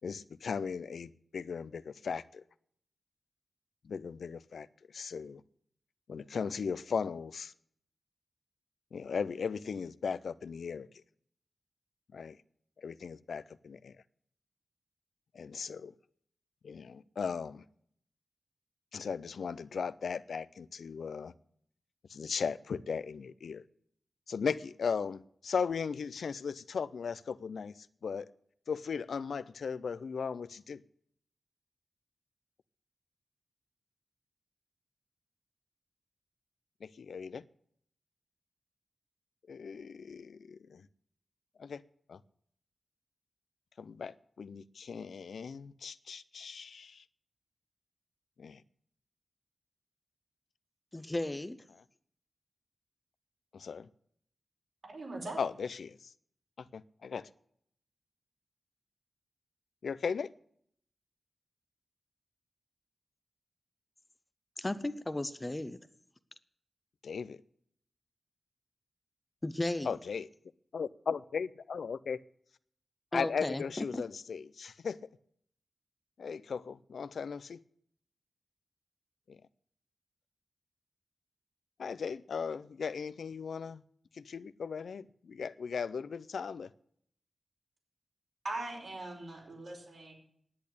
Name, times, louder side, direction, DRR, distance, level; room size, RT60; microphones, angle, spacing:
voice 1, 0.0-2.4 3.8-5.4 6.1-7.5 8.9-10.9 12.1-12.4 12.8-14.0 15.3-15.9 16.6-17.6 18.9-21.3 22.1-23.6 24.3-28.3 28.7-30.8 36.8-37.4 39.5-40.9 41.6-41.8 42.1-42.2 43.8-47.0 48.4-48.6 53.5-53.9 55.4-56.1 56.6-57.3 59.8-60.3 67.0-67.4 69.8-70.3 70.7-72.2 73.1-75.0 76.2-77.6 79.3-79.4 81.8-83.8 84.1-86.7, left 6 dB, 85° left, 0.4 m, -37 dB
voice 2, 50.9-51.6 64.6-65.8 69.4-70.0 73.1-74.0, left 1 dB, 25° left, 0.7 m, -35 dB
voice 3, 54.9-55.4 88.4-90.1, right 2 dB, 70° right, 5.0 m, -40 dB
10.5 x 8.6 x 8.4 m
cardioid pair, 70°, 0 cm